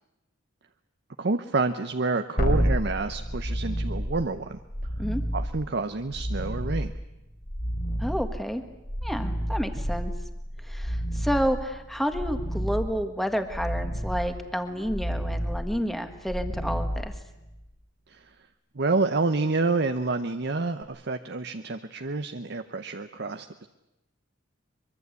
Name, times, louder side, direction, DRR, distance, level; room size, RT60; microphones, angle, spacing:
voice 1, 1.2-4.6 5.3-6.9 18.1-18.2 18.7-23.7, right 3 dB, 55° right, 8 dB, 0.8 m, -28 dB
sound 1, 2.4-17.7 20.8-20.9, equal, 45° left, 3.6 m, -30 dB
voice 2, 8.0-8.6 9.0-10.1 10.6-17.1, equal, ahead, 7 dB, 1.7 m, -30 dB
23.5 x 23.0 x 8.3 m, 0.94 s
head